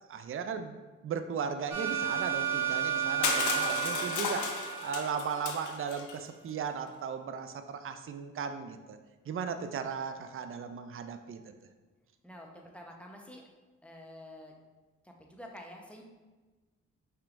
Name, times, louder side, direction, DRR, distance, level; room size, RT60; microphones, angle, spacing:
voice 1, 0.1-0.8 1.0-4.5 4.8-9.0 9.3-11.4, right 6 dB, 40° right, 8 dB, 0.5 m, -36 dB
sound 1, 1.7-5.6, right 9 dB, 85° right, 0.8 m, -32 dB
Crushing, 3.2-6.2, left 6 dB, 70° left, 0.6 m, -34 dB
voice 2, 12.2-13.5 13.8-14.5 15.0-16.0, left 1 dB, 5° left, 0 dB, 0.9 m, -48 dB
5.6 x 3.4 x 2.5 m, 1.2 s
supercardioid pair, 50°, 32 cm